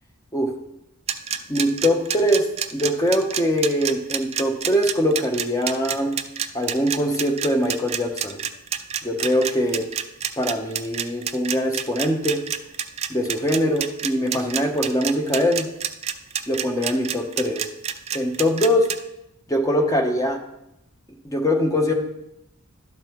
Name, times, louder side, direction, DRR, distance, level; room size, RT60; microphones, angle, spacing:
sound 1, 1.1-19.0, right 9 dB, 30° right, 0.4 m, -27 dB
voice 1, 1.5-2.5 2.7-6.1 6.5-8.4 9.0-9.9 10.4-12.4 13.1-15.7 16.5-17.6 18.1-18.9 19.5-20.4 21.2-21.9, equal, 15° left, 3 dB, 0.9 m, -22 dB
12.0 x 5.4 x 3.0 m, 0.85 s
head